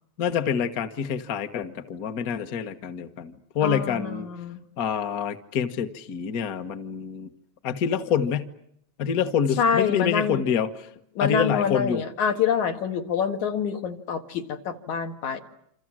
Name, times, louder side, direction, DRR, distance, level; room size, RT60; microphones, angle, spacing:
voice 1, 0.2-4.3 4.8-7.3 7.6-8.5 9.0-10.7 11.2-12.0, left 7 dB, 50° left, 8 dB, 1.1 m, -26 dB
voice 2, 3.6-4.6 9.6-10.4 11.1-15.4, left 7 dB, 80° left, 5 dB, 3.2 m, -26 dB
28.0 x 26.5 x 7.5 m, 0.72 s
omnidirectional pair, 3.4 m